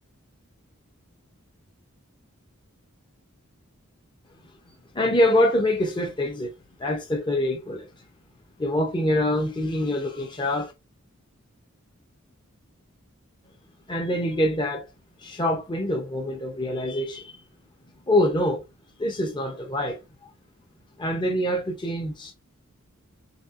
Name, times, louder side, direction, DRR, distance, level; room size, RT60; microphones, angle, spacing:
voice 1, 4.9-6.5 6.8-8.0 8.6-10.7 13.9-14.9 15.2-17.4 18.1-18.6 19.0-20.3 21.0-22.3, left 1 dB, 20° left, 0.6 m, -25 dB
4.1 x 3.5 x 2.4 m
head